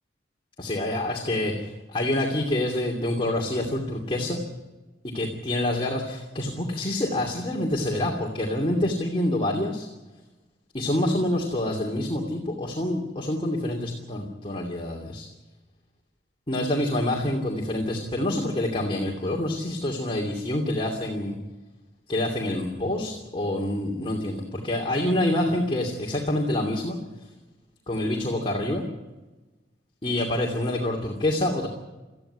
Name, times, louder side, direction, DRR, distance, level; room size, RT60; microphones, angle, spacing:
voice 1, 0.6-4.4 5.0-9.9 10.7-15.3 16.5-21.3 22.1-27.0 27.9-28.8 30.0-31.7, left 1 dB, 30° left, -1 dB, 2.7 m, -27 dB
19.5 x 14.0 x 9.9 m, 1.1 s
head